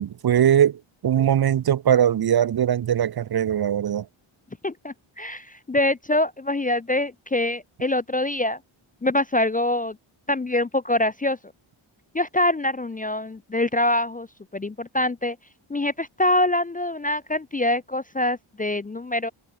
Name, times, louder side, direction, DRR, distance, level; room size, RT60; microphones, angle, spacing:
voice 1, 0.0-4.0, right 10 dB, 50° right, 0.6 m, -21 dB
voice 2, 4.6-8.6 9.0-10.0 10.3-11.4 12.1-14.3 14.5-15.4 15.7-19.3, left 1 dB, 20° left, 0.5 m, -24 dB
wide cardioid pair, 135°, 50 cm